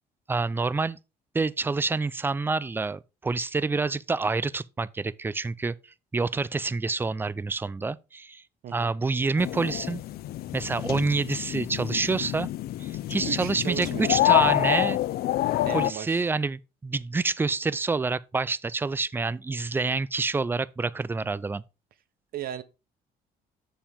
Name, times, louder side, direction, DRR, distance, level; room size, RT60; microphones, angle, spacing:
voice 1, 0.3-1.0 1.3-5.7 6.1-8.4 8.7-10.0 10.5-12.5 12.8-15.0 15.7-21.6, right 4 dB, 15° right, 0.4 m, -27 dB
voice 2, 8.6-8.9 13.2-14.3 15.7-16.3 22.3-22.6, right 10 dB, 60° right, 1.0 m, -36 dB
sound 1, 9.4-15.9, left 15 dB, 65° left, 0.5 m, -27 dB
7.2 x 7.1 x 3.6 m
cardioid pair, 110°, 17 cm